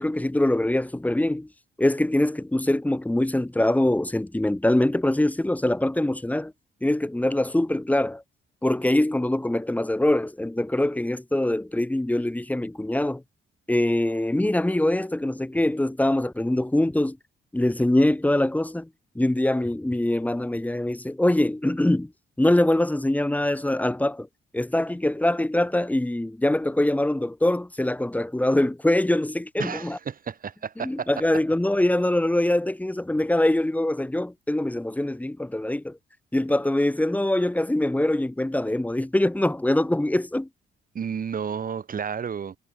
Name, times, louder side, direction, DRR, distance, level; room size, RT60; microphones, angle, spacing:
voice 1, 0.0-1.5 1.8-6.5 6.8-8.2 8.6-13.2 13.7-17.2 17.5-18.9 19.1-22.1 22.4-24.3 24.5-30.0 30.8-36.0 36.3-40.5, left 1 dB, 5° left, 1.3 m, -23 dB
voice 2, 29.6-31.1 40.9-42.6, right 7 dB, 45° right, 2.9 m, -31 dB
cardioid pair, 90°, 20 cm